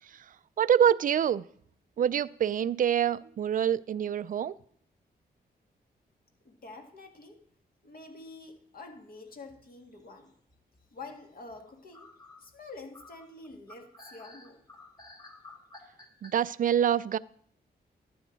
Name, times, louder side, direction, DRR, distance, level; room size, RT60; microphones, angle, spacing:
voice 1, 0.6-1.5 2.0-4.5 16.2-17.2, right 9 dB, 50° right, 0.4 m, -26 dB
voice 2, 6.4-7.4 7.8-10.3 10.9-12.1 12.4-14.6, left 3 dB, 60° left, 2.0 m, -47 dB
sound 1, 9.3-10.0 10.5-11.1 11.5-11.6 11.9-16.3, left 2 dB, 20° left, 2.0 m, -52 dB
12.0 x 9.3 x 3.9 m
cardioid pair, 85°, 17 cm